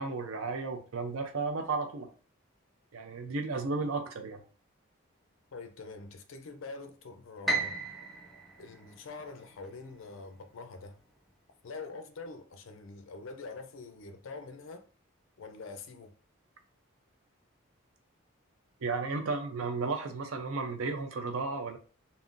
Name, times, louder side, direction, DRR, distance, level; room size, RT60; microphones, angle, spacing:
voice 1, 0.0-2.1 2.9-4.4 18.8-21.8, right 3 dB, 80° right, 0.5 m, -33 dB
voice 2, 5.5-7.9 8.6-11.0 11.6-14.8 15.4-16.1, left 3 dB, 70° left, 0.4 m, -45 dB
Piano, 7.5-9.7, right 3 dB, ahead, 0.4 m, -35 dB
3.6 x 2.0 x 2.5 m
head